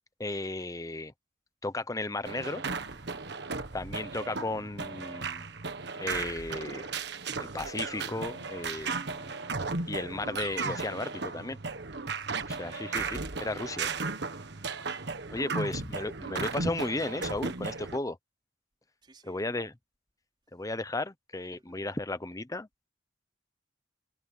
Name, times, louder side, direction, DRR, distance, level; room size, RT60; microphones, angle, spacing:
voice 1, 0.2-1.1 1.6-2.6 3.7-5.4 6.0-6.9 7.4-8.9 9.9-11.6 12.5-13.9 15.3-18.2 19.3-19.7 20.5-22.7, left 2 dB, 20° left, 0.8 m, -34 dB
sound 1, 2.2-18.0, right 4 dB, 65° right, 1.5 m, -35 dB
voice 2, 2.9-3.3 12.2-12.7 15.2-15.5 19.0-19.7 21.6-21.8, right 2 dB, 25° right, 4.6 m, -61 dB
Bowed string instrument, 7.6-11.7, left 1 dB, 55° left, 3.8 m, -58 dB
head